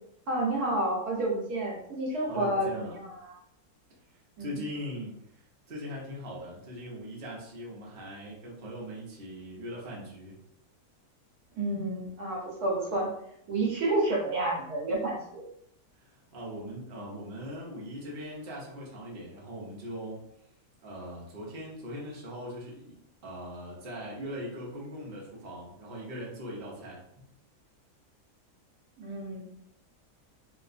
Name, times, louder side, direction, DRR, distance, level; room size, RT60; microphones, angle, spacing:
voice 1, 0.3-3.3 4.4-4.6 11.6-13.1 13.5-15.4 29.0-29.5, right 2 dB, 75° right, -3 dB, 1.5 m, -30 dB
voice 2, 2.2-3.0 4.4-10.4 16.0-20.2 20.8-23.0 23.2-27.0, equal, 45° right, -4 dB, 0.9 m, -40 dB
3.0 x 3.0 x 2.5 m, 0.75 s
omnidirectional pair, 1.6 m